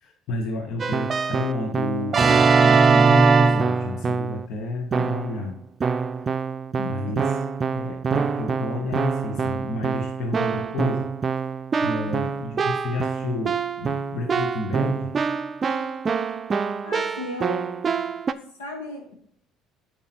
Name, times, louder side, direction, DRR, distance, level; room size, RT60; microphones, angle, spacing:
voice 1, 0.0-5.6 6.8-7.3 7.7-11.1 11.8-15.1, left 2 dB, 60° left, 4 dB, 1.0 m, -30 dB
Keyboard (musical), 0.8-4.5 4.9-5.4 5.8-18.3, right 5 dB, 35° right, 0.5 m, -23 dB
voice 2, 16.8-17.7 18.6-19.1, left 1 dB, 85° left, 2 dB, 1.4 m, -35 dB
7.1 x 4.7 x 4.3 m, 0.67 s
hypercardioid pair, 60°, 0 cm